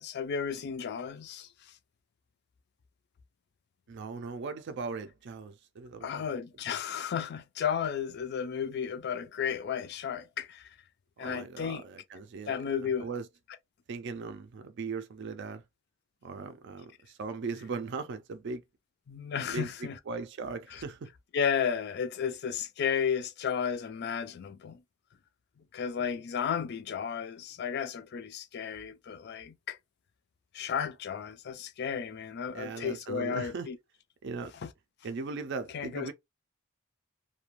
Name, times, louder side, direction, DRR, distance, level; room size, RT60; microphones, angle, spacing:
voice 1, 0.0-1.5 6.0-10.7 11.2-11.8 12.5-13.1 19.1-20.0 20.7-20.8 21.3-24.8 25.7-29.8 30.5-33.8 34.6-34.7 35.7-36.1, left 7 dB, 55° left, 0.4 m, -33 dB
voice 2, 3.9-6.3 11.2-12.6 13.0-13.3 13.9-15.6 16.2-18.6 19.5-21.1 32.5-33.7 34.2-34.5 35.0-36.1, right 4 dB, 55° right, 0.4 m, -38 dB
2.4 x 2.2 x 3.0 m
head